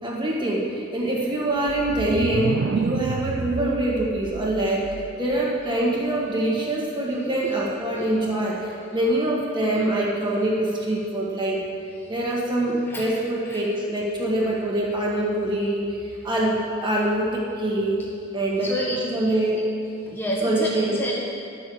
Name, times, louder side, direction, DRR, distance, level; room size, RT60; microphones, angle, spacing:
voice 1, 0.0-11.6 12.1-15.8 16.2-18.0 18.3-18.7 19.1-19.7 20.4-21.0, right 1 dB, 25° right, -4 dB, 1.8 m, -24 dB
sound 1, 1.6-5.4, right 5 dB, 70° right, 0.4 m, -30 dB
voice 2, 18.6-19.0 20.1-21.1, equal, 10° left, -4 dB, 1.2 m, -28 dB
11.0 x 6.5 x 7.8 m, 2.5 s
head